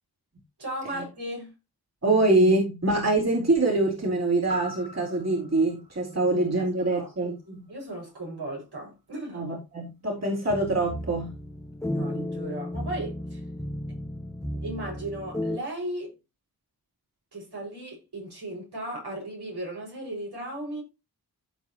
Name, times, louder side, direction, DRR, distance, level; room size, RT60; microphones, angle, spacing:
voice 1, 0.6-1.5 6.3-7.1 7.7-9.5 11.9-13.4 14.6-16.1 17.3-20.8, right 1 dB, 80° right, 6.6 m, -36 dB
voice 2, 2.0-7.6 9.3-11.3, right 2 dB, 40° right, 3.9 m, -24 dB
sound 1, 4.5-8.6 9.0-9.1, right 1 dB, 60° right, 3.8 m, -45 dB
sound 2, 10.5-15.6, left 1 dB, 5° left, 1.1 m, -34 dB
15.0 x 5.1 x 3.1 m
wide cardioid pair, 60°, 39 cm